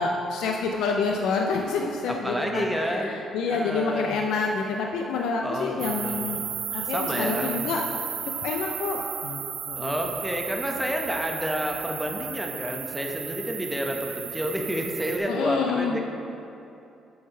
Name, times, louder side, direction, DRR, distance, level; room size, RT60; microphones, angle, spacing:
voice 1, 0.0-6.4 6.7-7.8 8.4-9.4 9.7-9.9 15.3-16.0, left 4 dB, 85° left, 1 dB, 0.5 m, -28 dB
voice 2, 2.1-3.2 3.5-4.2 5.4-6.2 6.9-7.5 9.8-16.0, equal, 5° right, 1 dB, 0.9 m, -29 dB
sound 1, 5.8-15.2, right 8 dB, 80° right, 0.7 m, -34 dB
6.5 x 5.7 x 5.5 m, 2.7 s
cardioid pair, 90°, 0 cm